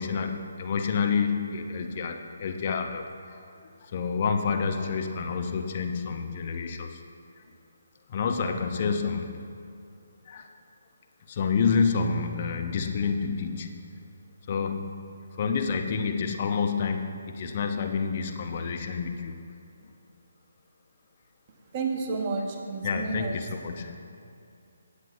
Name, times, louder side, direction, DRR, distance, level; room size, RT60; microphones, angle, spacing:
voice 1, 0.0-3.4 3.8-7.0 7.4-7.5 8.1-9.6 10.3-10.5 11.3-13.9 14.5-19.4 22.8-24.0, left 5 dB, 40° left, 5 dB, 0.6 m, -29 dB
voice 2, 21.5-23.3, right 4 dB, 30° right, 2 dB, 1.1 m, -31 dB
16.5 x 8.1 x 2.6 m, 2.6 s
figure-of-eight pair, 140°, 0 cm